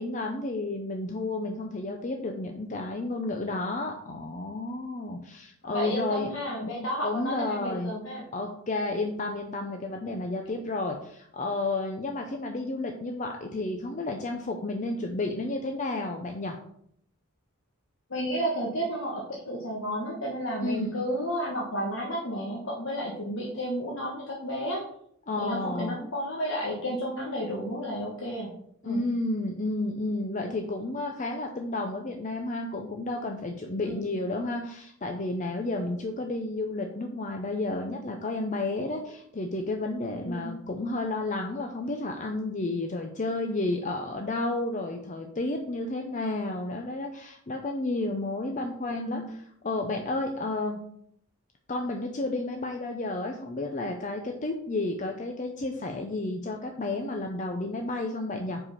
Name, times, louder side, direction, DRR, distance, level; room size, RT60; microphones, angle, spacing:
voice 1, 0.0-6.3 6.6-6.8 7.0-7.9 8.3-16.6 20.6-21.1 25.3-26.0 28.8-49.2 49.6-50.8 51.7-58.6, left 2 dB, 35° left, 3 dB, 0.6 m, -31 dB
voice 2, 5.6-8.2 18.1-24.8 25.4-28.5 28.8-29.1 30.4-30.6 33.8-34.1 40.2-40.6 49.1-49.2, equal, 65° left, -2 dB, 1.2 m, -32 dB
4.9 x 4.9 x 5.5 m, 0.68 s
head